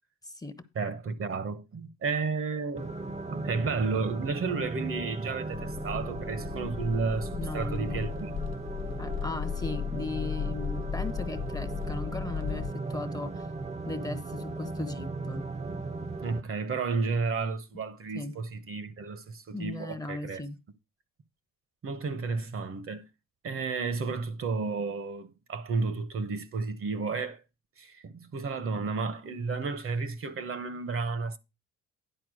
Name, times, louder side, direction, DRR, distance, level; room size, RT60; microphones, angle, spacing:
voice 1, 0.2-0.6 7.3-8.1 9.0-13.5 13.9-15.4 18.1-18.4 19.5-20.6, left 2 dB, 10° left, 0.8 m, -37 dB
voice 2, 0.7-2.9 3.3-8.3 16.2-20.4 21.8-23.1 23.4-27.4 27.8-31.4, right 4 dB, 45° right, 1.1 m, -32 dB
sound 1, 2.8-16.4, right 3 dB, 20° right, 0.7 m, -37 dB
sound 2, 5.5-12.7, left 8 dB, 45° left, 0.5 m, -36 dB
10.0 x 4.4 x 6.3 m
cardioid pair, 90°, 30 cm